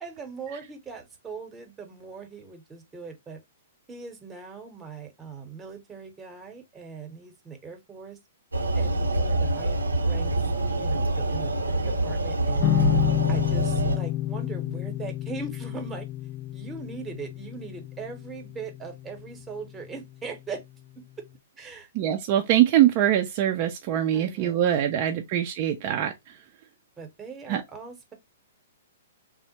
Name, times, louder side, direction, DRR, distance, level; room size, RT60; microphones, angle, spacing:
voice 1, 0.0-3.4 3.9-8.2 8.7-10.3 10.8-12.7 13.3-16.1 16.5-20.6 21.6-21.9 24.1-25.2 27.0-28.1, right 5 dB, 15° right, 0.8 m, -40 dB
sound 1, 8.5-14.0, right 2 dB, 85° right, 0.6 m, -26 dB
sound 2, 12.6-19.8, left 13 dB, 25° left, 0.3 m, -29 dB
voice 2, 21.9-26.4 27.5-27.6, right 11 dB, 40° right, 0.4 m, -23 dB
3.3 x 2.1 x 2.9 m
figure-of-eight pair, 115°, 0 cm